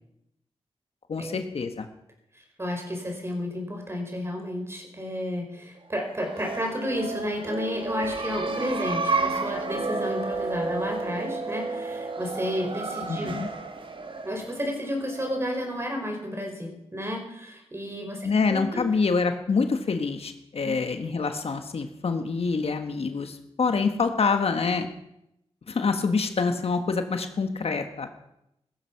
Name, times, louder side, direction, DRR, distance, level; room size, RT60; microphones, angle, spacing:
voice 1, 1.1-1.9 13.1-13.5 18.2-24.9 25.7-28.1, left 4 dB, 65° left, 7 dB, 1.4 m, -26 dB
voice 2, 2.6-13.4 14.2-18.8 20.6-20.7, equal, 25° right, 2 dB, 4.8 m, -32 dB
sound 1, 6.1-15.6, right 3 dB, 50° right, 1.5 m, -31 dB
16.0 x 15.0 x 5.8 m, 0.81 s
wide cardioid pair, 110°, 11 cm